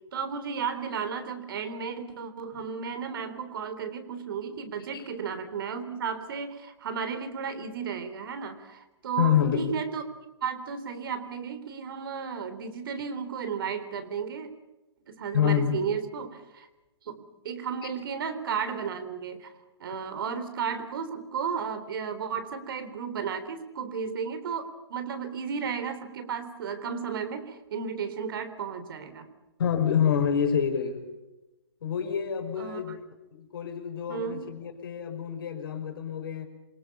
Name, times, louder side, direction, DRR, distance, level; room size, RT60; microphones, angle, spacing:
voice 1, 0.1-10.0 10.4-14.5 15.1-16.7 17.0-19.5 19.8-29.3 32.6-33.0 34.1-34.5, right 6 dB, 50° right, 3.7 m, -34 dB
voice 2, 9.2-9.8 15.3-15.8 29.6-31.1 31.8-33.0 33.3-36.5, left 8 dB, 50° left, 5.4 m, -27 dB
28.0 x 24.5 x 5.6 m
figure-of-eight pair, 125°, 15 cm